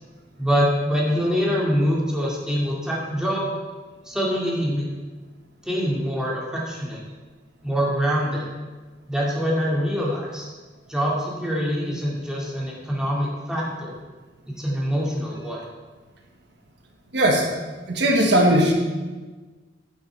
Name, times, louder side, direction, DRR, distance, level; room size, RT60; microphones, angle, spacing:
voice 1, 0.4-3.5 4.1-4.9 5.6-7.0 7.6-8.5 9.1-10.5 10.9-14.0 14.6-15.6, equal, 5° right, -5 dB, 2.2 m, -24 dB
voice 2, 17.1-17.5 17.9-18.7, right 1 dB, 65° right, 1 dB, 1.4 m, -18 dB
11.5 x 7.0 x 4.7 m, 1.3 s
head